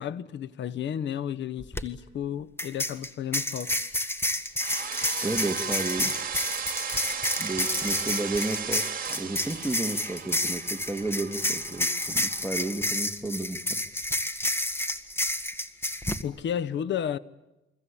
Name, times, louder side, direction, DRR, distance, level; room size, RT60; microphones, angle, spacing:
voice 1, 0.0-3.7 16.2-17.2, left 9 dB, 65° left, 1.0 m, -32 dB
sound 1, 1.6-1.8 2.6-16.2, left 1 dB, 10° left, 1.7 m, -30 dB
sound 2, 4.6-12.7, right 7 dB, 45° right, 2.3 m, -36 dB
voice 2, 5.2-6.2 7.4-13.8, right 2 dB, 5° right, 2.0 m, -32 dB
28.5 x 24.0 x 8.5 m
cardioid pair, 90°, 20 cm